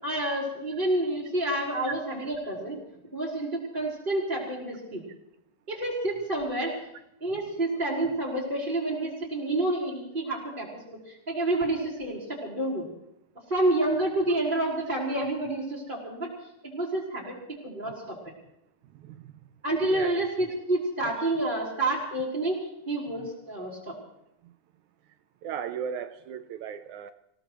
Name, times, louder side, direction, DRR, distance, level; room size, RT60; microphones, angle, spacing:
voice 1, 0.0-2.8 3.1-5.0 5.7-6.8 7.2-10.7 11.1-12.9 13.5-16.3 16.7-17.4 17.6-18.2 19.6-22.6 22.9-23.9, right 1 dB, 15° right, 4.3 m, -29 dB
voice 2, 18.9-19.3 19.9-20.2 24.4-24.5 25.4-27.1, right 8 dB, 75° right, 1.8 m, -36 dB
27.5 x 17.0 x 3.1 m
omnidirectional pair, 4.0 m